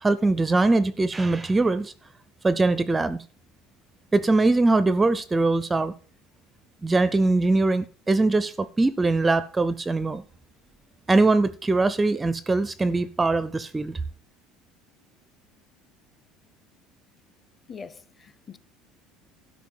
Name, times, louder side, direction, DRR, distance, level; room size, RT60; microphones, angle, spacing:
voice 1, 0.0-1.9 2.4-3.2 4.1-5.9 6.8-10.2 11.1-14.0, right 3 dB, 10° right, 0.4 m, -22 dB
voice 2, 17.7-18.6, left 5 dB, 20° left, 0.7 m, -43 dB
12.5 x 5.0 x 7.4 m
cardioid pair, 160°, 0 cm